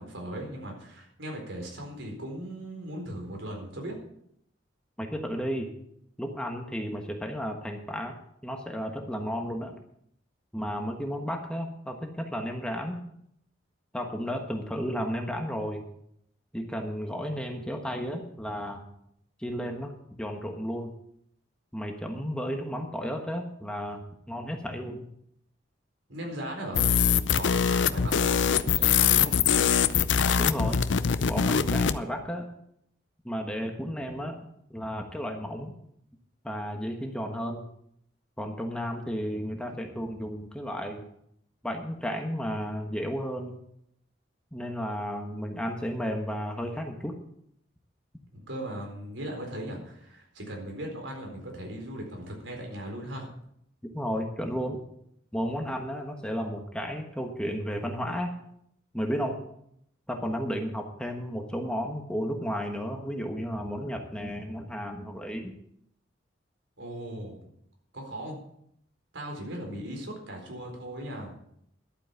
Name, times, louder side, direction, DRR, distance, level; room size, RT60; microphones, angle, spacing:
voice 1, 0.0-3.9 26.1-26.9 27.3-29.3 48.3-53.3 66.8-67.4 67.9-68.4 69.1-71.3, right 1 dB, 85° right, 1 dB, 4.2 m, -38 dB
voice 2, 5.0-5.7 6.2-8.2 8.4-9.8 10.5-13.0 13.9-15.8 16.5-18.8 19.4-19.9 20.2-20.9 21.7-25.0 30.3-30.8 31.3-32.5 33.2-34.4 34.7-35.7 36.4-37.6 38.4-41.1 41.6-43.6 44.5-47.1 53.9-54.8 55.3-58.3 58.9-59.4 60.1-65.5, equal, 5° left, 3 dB, 1.3 m, -33 dB
sound 1, 26.7-32.0, left 7 dB, 75° left, 0.6 m, -23 dB
11.5 x 8.8 x 7.0 m, 0.73 s
head